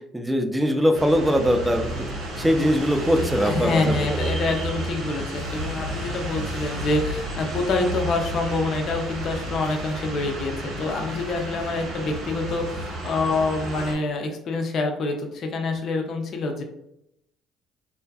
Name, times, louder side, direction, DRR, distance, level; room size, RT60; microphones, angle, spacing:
voice 1, 0.1-2.1 2.4-4.3, equal, 10° right, 5 dB, 0.4 m, -22 dB
sound 1, 0.9-14.0, right 1 dB, 75° right, 1.0 m, -32 dB
voice 2, 3.4-16.6, left 3 dB, 55° left, 3 dB, 0.5 m, -26 dB
2.5 x 2.4 x 2.3 m, 0.82 s
hypercardioid pair, 65°, 0 cm